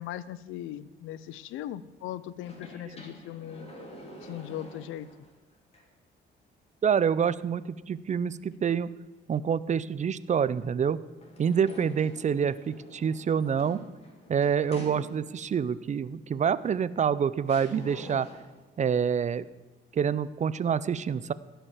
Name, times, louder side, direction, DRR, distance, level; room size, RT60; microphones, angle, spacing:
voice 1, 0.0-3.7 4.2-5.1, left 12 dB, 90° left, 17 dB, 0.5 m, -39 dB
sound 1, 2.4-5.3 5.7-5.8 11.2-15.5 16.7-16.8 17.5-18.6, equal, 30° left, 3.1 m, -47 dB
voice 2, 6.8-8.9 9.3-11.0 11.4-13.8 14.3-18.3 18.8-19.5 19.9-21.3, right 7 dB, 35° right, 17 dB, 0.5 m, -27 dB
15.5 x 5.6 x 7.2 m, 1.2 s
cardioid pair, 90°, 20 cm